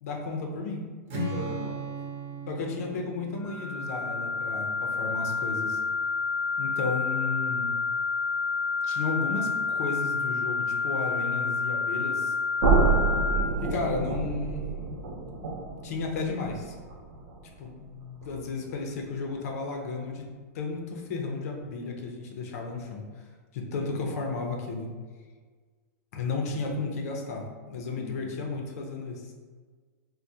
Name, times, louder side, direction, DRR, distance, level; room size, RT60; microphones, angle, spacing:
voice 1, 0.0-0.9 2.5-5.8 6.6-7.7 8.8-12.3 13.6-14.6 15.8-16.7 17.6-20.2 20.5-23.0 23.5-24.9 26.1-29.3, left 3 dB, 65° left, 1 dB, 0.6 m, -33 dB
Strum, 1.1-5.2, right 2 dB, 50° right, 1.0 m, -37 dB
voice 2, 1.3-1.8 13.3-13.7 23.9-24.2 27.9-28.4, left 1 dB, 30° right, -5 dB, 1.1 m, -41 dB
sound 1, 3.4-13.3, left 4 dB, 10° left, 0.7 m, -29 dB
sound 2, 12.6-18.5, right 4 dB, 70° right, 0.6 m, -28 dB
3.3 x 2.1 x 2.7 m, 1.5 s
hypercardioid pair, 145°, 9 cm